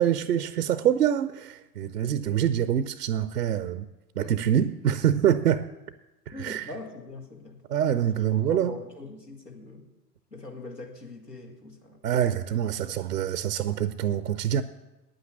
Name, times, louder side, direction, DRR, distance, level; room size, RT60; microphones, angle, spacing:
voice 1, 0.0-3.9 4.2-5.7 6.3-6.7 7.7-8.8 12.0-14.6, right 10 dB, 80° right, 0.7 m, -25 dB
voice 2, 4.2-4.6 6.3-7.6 8.5-9.9 10.3-12.0 12.9-13.0, left 3 dB, 90° left, 2.2 m, -42 dB
9.4 x 8.9 x 8.4 m
figure-of-eight pair, 85°, 47 cm